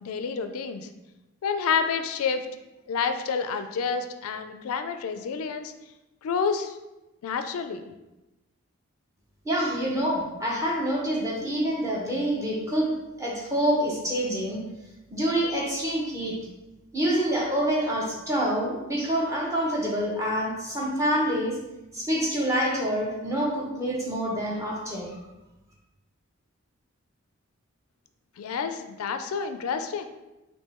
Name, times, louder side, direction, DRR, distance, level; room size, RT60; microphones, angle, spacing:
voice 1, 0.0-0.9 1.4-2.5 2.9-5.7 6.2-6.8 7.2-7.8 28.4-30.1, left 6 dB, 85° left, 9 dB, 0.3 m, -29 dB
voice 2, 9.4-12.9 13.2-14.6 15.1-16.4 16.9-21.6 21.9-25.2, equal, 15° right, -4 dB, 0.8 m, -26 dB
3.6 x 2.7 x 4.2 m, 1.0 s
head